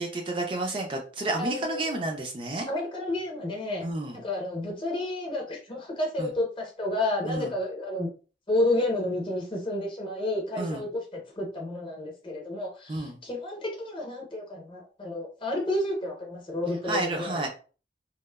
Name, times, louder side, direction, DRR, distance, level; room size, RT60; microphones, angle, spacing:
voice 1, 0.0-2.7 3.8-4.2 6.2-6.3 7.3-7.5 10.6-10.8 12.9-13.2 16.8-17.5, right 2 dB, 30° right, 2 dB, 0.3 m, -30 dB
voice 2, 1.4-1.9 2.7-3.8 4.2-8.1 8.5-17.4, left 1 dB, 30° left, 0 dB, 0.7 m, -30 dB
3.0 x 2.0 x 2.2 m, 0.37 s
head